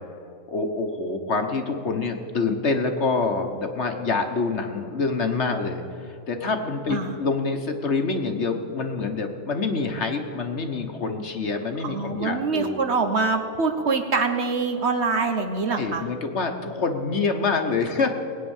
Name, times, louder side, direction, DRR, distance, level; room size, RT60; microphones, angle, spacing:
voice 1, 0.5-12.8 15.7-18.1, left 4 dB, 50° left, 5 dB, 1.3 m, -26 dB
voice 2, 11.8-16.0, right 4 dB, 50° right, 5 dB, 1.1 m, -24 dB
19.5 x 9.2 x 7.2 m, 2.6 s
omnidirectional pair, 1.6 m